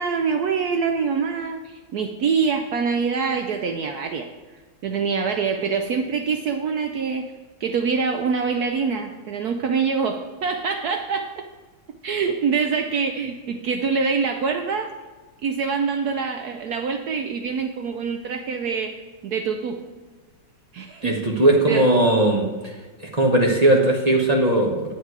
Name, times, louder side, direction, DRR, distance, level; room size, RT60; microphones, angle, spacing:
voice 1, 0.0-4.3 4.8-7.3 7.6-11.5 12.0-14.9 15.4-19.8 20.7-21.9, right 5 dB, 75° right, 5 dB, 0.9 m, -25 dB
voice 2, 21.0-22.5 23.1-24.8, right 1 dB, 30° right, 0 dB, 0.8 m, -18 dB
10.0 x 7.3 x 4.7 m, 1.3 s
omnidirectional pair, 2.2 m